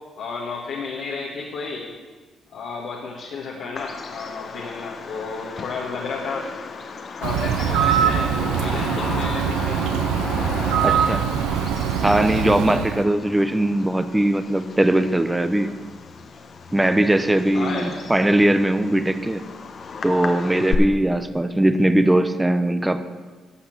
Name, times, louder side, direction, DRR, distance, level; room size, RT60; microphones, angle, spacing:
voice 1, 0.2-1.9 2.5-6.4 7.2-9.8 17.5-18.1, left 4 dB, 75° left, -3 dB, 1.5 m, -32 dB
Bird vocalization bird call bird song, 3.8-20.8, left 5 dB, 55° left, 1.0 m, -34 dB
Bird, 7.2-13.1, right 8 dB, 85° right, 0.6 m, -23 dB
voice 2, 10.8-11.3 12.0-15.7 16.7-19.4 20.0-23.0, right 1 dB, 15° right, 10 dB, 0.9 m, -20 dB
11.5 x 5.9 x 7.3 m, 1.4 s
hypercardioid pair, 50°, 0 cm